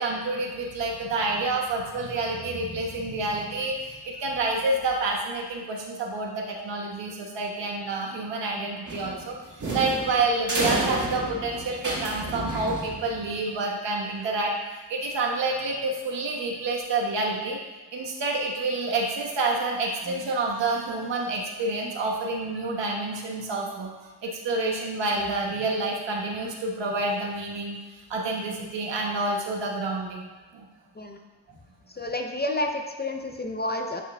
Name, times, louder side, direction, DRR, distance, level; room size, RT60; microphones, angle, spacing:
voice 1, 0.0-14.5 14.9-17.6 17.9-23.9 24.2-27.8 28.1-30.3 30.5-30.7, right 2 dB, 75° right, -1 dB, 1.3 m, -28 dB
sound 1, 8.8-13.3, right 2 dB, 40° right, 1.9 m, -30 dB
voice 2, 31.9-34.0, left 1 dB, 25° left, 3 dB, 0.5 m, -30 dB
10.5 x 4.7 x 2.2 m, 1.2 s
cardioid pair, 95°, 44 cm